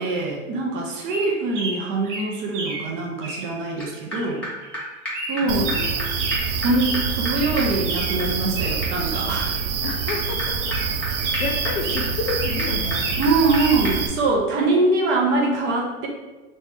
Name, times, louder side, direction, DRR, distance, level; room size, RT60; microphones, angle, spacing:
voice 1, 0.0-4.4 5.3-5.7 6.6-9.6 13.2-16.1, right 3 dB, 30° right, 0 dB, 0.6 m, -23 dB
sound 1, 1.1-2.9 3.2-8.2 8.5-9.6 10.0-10.1 10.6-12.1 12.4-13.7, right 2 dB, 55° right, 1.0 m, -32 dB
sound 2, 3.8-3.9 4.1-4.2 4.4-4.5 4.7-4.8 5.1-5.2 5.4-5.5 5.7-5.8 6.0-6.1 6.3-13.6 13.9-14.0, equal, 5° left, 1.0 m, -34 dB
voice 2, 5.4-6.1 9.8-13.1, left 4 dB, 40° left, 1 dB, 0.5 m, -31 dB
sound 3, 5.5-14.1, right 6 dB, 85° right, 0.6 m, -26 dB
3.1 x 2.8 x 3.4 m, 1.2 s
hypercardioid pair, 115°, 42 cm